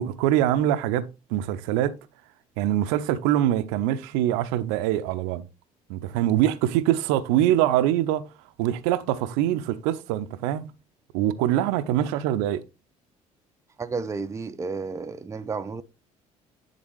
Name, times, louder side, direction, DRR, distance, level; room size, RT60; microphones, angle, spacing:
voice 1, 0.0-2.0 2.6-5.4 5.9-8.3 8.6-10.7 11.1-12.6, right 12 dB, 60° right, 0.6 m, -24 dB
voice 2, 13.8-15.8, right 4 dB, 15° right, 0.5 m, -32 dB
10.0 x 4.1 x 3.1 m
figure-of-eight pair, 55°, 19 cm